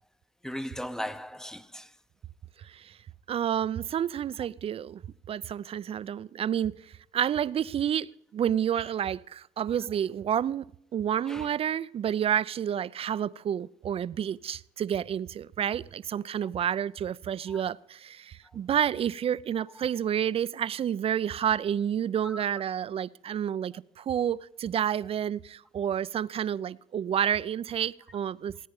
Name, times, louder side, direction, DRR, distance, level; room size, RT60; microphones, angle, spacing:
voice 1, 0.4-1.9 11.2-11.5 17.5-17.6 22.2-22.4, equal, 5° left, 0.7 m, -37 dB
voice 2, 2.6-3.0 3.3-5.0 5.3-10.7 10.9-28.7, right 9 dB, 35° right, 0.4 m, -29 dB
18.0 x 9.4 x 5.3 m
hypercardioid pair, 75°, 16 cm